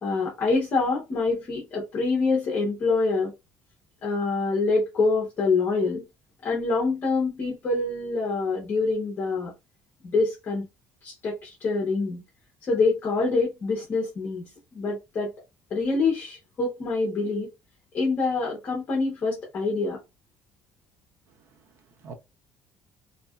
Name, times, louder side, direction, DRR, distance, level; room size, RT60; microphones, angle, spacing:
voice 1, 0.0-3.3 4.0-6.0 6.4-9.5 10.0-10.6 11.0-12.2 12.6-15.3 15.7-17.5 17.9-20.0, left 3 dB, 35° left, 0.8 m, -25 dB
voice 2, 21.4-22.1, right 5 dB, 50° right, 0.6 m, -47 dB
2.7 x 2.3 x 2.3 m
cardioid pair, 170°, 6 cm